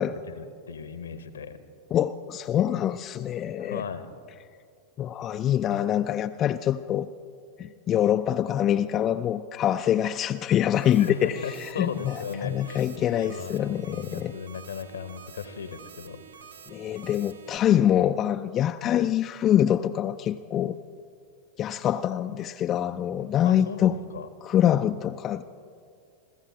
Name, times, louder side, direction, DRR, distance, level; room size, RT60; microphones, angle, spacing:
voice 1, 0.3-1.6 3.6-4.1 11.0-12.8 13.2-16.5 23.4-24.3, left 6 dB, 70° left, 11 dB, 0.9 m, -37 dB
voice 2, 1.9-3.8 5.0-7.1 7.6-11.3 11.6-12.2 12.4-14.3 16.7-20.8 21.6-24.0 24.4-25.4, left 11 dB, 30° left, 8 dB, 0.3 m, -25 dB
sound 1, 10.7-17.6, right 7 dB, 65° right, 0.6 m, -48 dB
29.5 x 14.5 x 2.7 m, 2.3 s
figure-of-eight pair, 90°, 0 cm